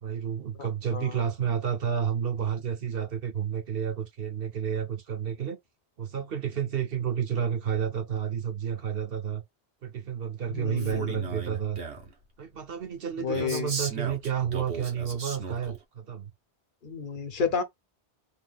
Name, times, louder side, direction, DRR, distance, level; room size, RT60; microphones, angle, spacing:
voice 1, 0.0-5.6 6.0-9.4 9.8-11.8 12.4-16.3, right 8 dB, 60° right, 1.0 m, -30 dB
voice 2, 0.6-1.2 10.5-11.3 13.2-13.7 16.8-17.6, left 6 dB, 55° left, 1.0 m, -31 dB
Male speech man speaking, 10.8-12.1 13.3-15.8, right 4 dB, 80° right, 1.4 m, -36 dB
3.8 x 2.7 x 4.0 m
omnidirectional pair, 1.1 m